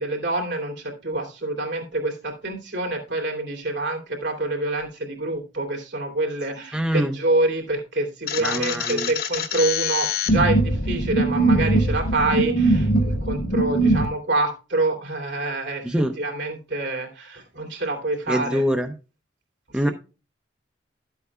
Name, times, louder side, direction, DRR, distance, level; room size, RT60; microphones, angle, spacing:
voice 1, 0.0-18.6 19.7-19.9, right 2 dB, 75° right, 2.9 m, -26 dB
voice 2, 6.7-7.1 8.4-9.1 15.8-16.1 18.3-18.9 19.7-19.9, equal, 5° right, 0.6 m, -24 dB
sound 1, 8.3-14.1, right 1 dB, 50° left, 1.2 m, -22 dB
12.0 x 8.0 x 2.4 m
head